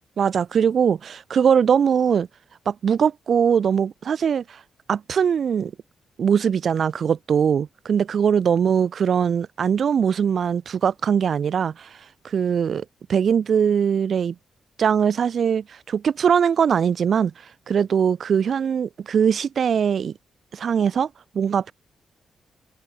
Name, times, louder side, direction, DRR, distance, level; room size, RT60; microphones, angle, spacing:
voice 1, 0.2-2.3 2.7-4.6 4.9-5.7 6.2-12.0 12.2-12.8 13.1-14.3 14.8-20.1 20.5-21.1 21.3-21.7, right 7 dB, 55° right, 2.1 m, -21 dB
cardioid pair, 110°, 0 cm